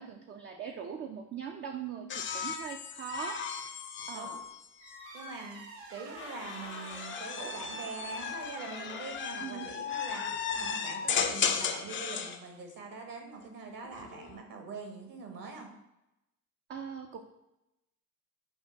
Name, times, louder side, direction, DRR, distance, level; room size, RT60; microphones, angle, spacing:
voice 1, 0.0-3.6 4.1-4.4 9.4-9.7 16.7-17.2, right 7 dB, 30° right, 3 dB, 0.4 m, -41 dB
sound 1, 2.1-5.4 6.2-12.4 13.8-14.4, left 6 dB, 30° left, 0.4 m, -35 dB
sound 2, 4.8-9.2, right 3 dB, 75° right, 0.8 m, -49 dB
voice 2, 5.1-5.6 5.9-15.7, right 4 dB, 55° right, 3 dB, 1.2 m, -43 dB
5.5 x 2.2 x 3.8 m, 0.89 s
hypercardioid pair, 60°, 40 cm